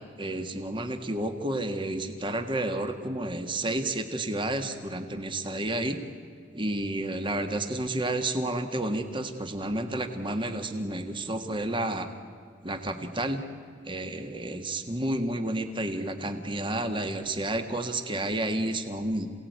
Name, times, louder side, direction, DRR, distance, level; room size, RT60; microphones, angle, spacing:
voice 1, 0.2-6.0 6.5-12.1 12.6-13.4 13.8-19.3, right 1 dB, 30° right, 7 dB, 1.7 m, -30 dB
28.0 x 17.5 x 9.4 m, 2.1 s
head